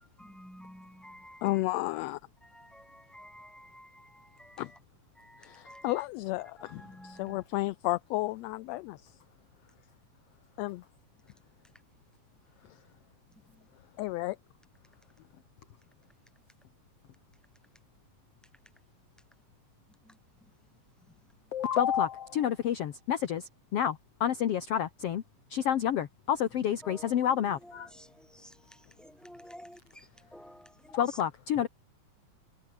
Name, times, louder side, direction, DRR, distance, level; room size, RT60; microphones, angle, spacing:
voice 1, 0.2-1.6 2.4-4.8 5.2-6.0 6.6-7.4 20.1-20.2 26.8-27.2 27.6-31.0, equal, ahead, 7.2 m, -52 dB
voice 2, 1.4-2.2 4.6-4.7 5.4-9.0 10.6-10.8 14.0-14.4, left 18 dB, 80° left, 1.5 m, -32 dB
voice 3, 21.5-25.2 25.5-27.9 30.9-31.7, left 9 dB, 60° left, 2.1 m, -29 dB
omnidirectional pair, 3.5 m